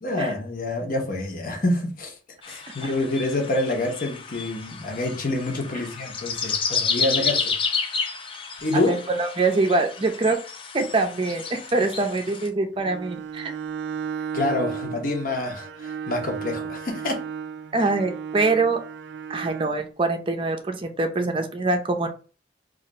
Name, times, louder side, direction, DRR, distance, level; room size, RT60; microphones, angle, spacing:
voice 1, 0.0-2.1 2.5-7.6 8.6-8.9 14.3-17.2, left 2 dB, 50° left, 0.9 m, -27 dB
sound 1, 2.4-12.5, left 5 dB, 30° left, 0.4 m, -31 dB
voice 2, 8.7-10.4 10.7-13.5 17.7-18.8 19.3-22.1, right 3 dB, 30° right, 0.5 m, -24 dB
Bowed string instrument, 12.8-19.8, right 7 dB, 85° right, 0.4 m, -34 dB
2.8 x 2.4 x 4.1 m
head